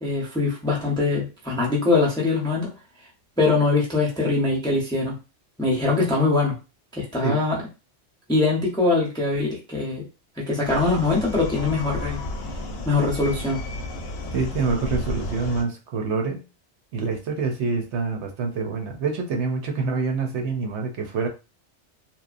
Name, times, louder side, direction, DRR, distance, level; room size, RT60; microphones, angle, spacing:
voice 1, 0.0-2.7 3.4-5.1 5.6-6.6 6.9-7.6 8.3-10.0 10.4-12.2 12.8-13.6, left 3 dB, 5° left, -3 dB, 0.5 m, -22 dB
sound 1, 10.6-15.6, left 1 dB, 65° left, 0.7 m, -32 dB
voice 2, 14.3-16.4 16.9-21.3, right 4 dB, 75° right, 3 dB, 0.9 m, -26 dB
2.9 x 2.1 x 2.4 m, 0.30 s
omnidirectional pair, 1.2 m